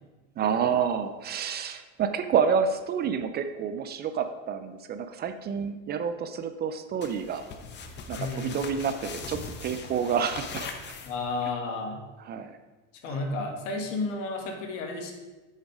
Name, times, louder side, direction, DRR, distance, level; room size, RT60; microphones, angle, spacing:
voice 1, 0.4-7.5 8.1-10.7 12.3-12.5, right 7 dB, 25° right, 9 dB, 0.4 m, -29 dB
sound 1, 7.0-11.5, left 5 dB, 30° left, 0.9 m, -40 dB
voice 2, 8.2-8.6 11.0-12.0 13.0-15.1, left 3 dB, 85° left, 3 dB, 1.8 m, -32 dB
8.1 x 6.5 x 4.8 m, 1.2 s
supercardioid pair, 135°, 37 cm